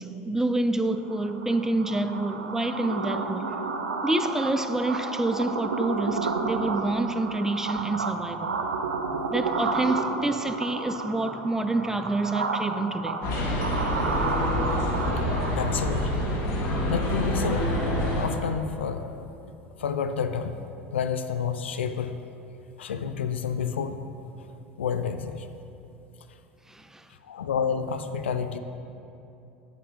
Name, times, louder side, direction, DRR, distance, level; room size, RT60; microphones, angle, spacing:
voice 1, 0.0-3.5 4.0-8.5 9.3-13.2 26.7-27.1, right 2 dB, 10° right, 0.3 m, -27 dB
sound 1, 1.0-16.4, right 4 dB, 90° right, 0.4 m, -31 dB
sound 2, 13.2-18.3, left 1 dB, 55° left, 1.4 m, -26 dB
voice 2, 15.6-16.1 16.9-17.7 18.2-19.3 19.8-20.6 20.9-22.1 22.8-24.1 24.4-24.5 24.8-25.5 27.2-28.6, left 7 dB, 80° left, 0.4 m, -29 dB
8.8 x 6.6 x 3.0 m
hypercardioid pair, 75°, 6 cm